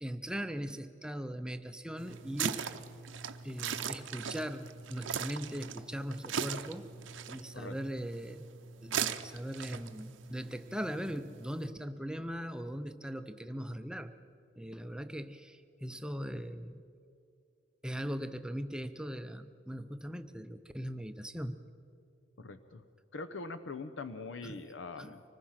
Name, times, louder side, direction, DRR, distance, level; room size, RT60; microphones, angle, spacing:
voice 1, 0.0-2.6 3.4-6.9 7.3-8.4 8.8-14.1 14.6-16.8 17.8-21.6 24.4-24.6 25.0-25.1, equal, 5° right, 9 dB, 0.6 m, -40 dB
sound 1, 2.0-11.7, right 7 dB, 85° right, 0.8 m, -40 dB
voice 2, 22.4-22.8 23.1-25.2, left 3 dB, 80° left, 9 dB, 0.8 m, -42 dB
25.0 x 20.0 x 5.8 m, 2.5 s
head